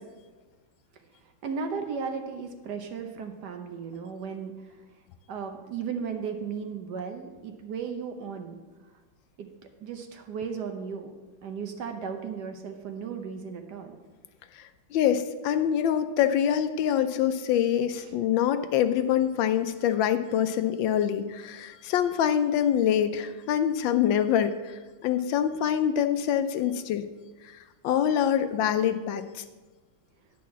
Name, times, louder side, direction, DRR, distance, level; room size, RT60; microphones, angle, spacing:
voice 1, 1.1-4.9 5.3-8.6 9.4-9.5 9.8-11.1 11.4-14.0 18.0-18.1, right 6 dB, 65° right, 5 dB, 1.1 m, -35 dB
voice 2, 14.9-27.1 27.4-27.6 27.8-29.4, left 9 dB, 75° left, 10 dB, 1.2 m, -25 dB
10.5 x 4.7 x 7.1 m, 1.3 s
omnidirectional pair, 2.2 m